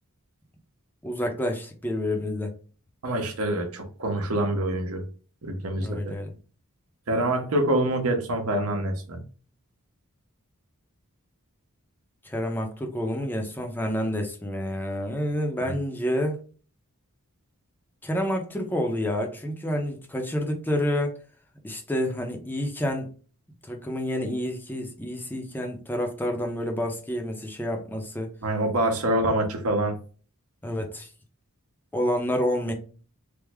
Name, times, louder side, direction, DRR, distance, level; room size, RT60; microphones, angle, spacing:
voice 1, 1.0-2.5 5.8-6.3 12.2-16.4 18.0-21.2 21.6-23.1 23.6-28.3 30.6-31.1 31.9-32.7, equal, 10° left, 0.6 m, -28 dB
voice 2, 3.0-5.0 5.4-6.1 7.1-9.2 15.6-15.7 28.4-30.0, right 1 dB, 70° right, 0.8 m, -26 dB
3.4 x 2.0 x 3.4 m
head